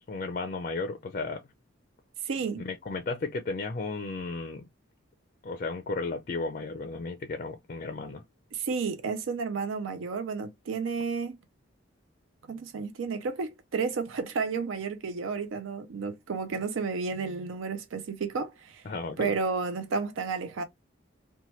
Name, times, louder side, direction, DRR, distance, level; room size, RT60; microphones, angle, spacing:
voice 1, 0.0-1.4 2.6-4.6 5.4-8.2 18.9-19.3, left 3 dB, 40° left, 0.4 m, -34 dB
voice 2, 2.2-2.6 8.5-11.4 12.5-18.9 19.2-20.6, right 5 dB, 80° right, 0.4 m, -32 dB
2.8 x 2.2 x 3.0 m
head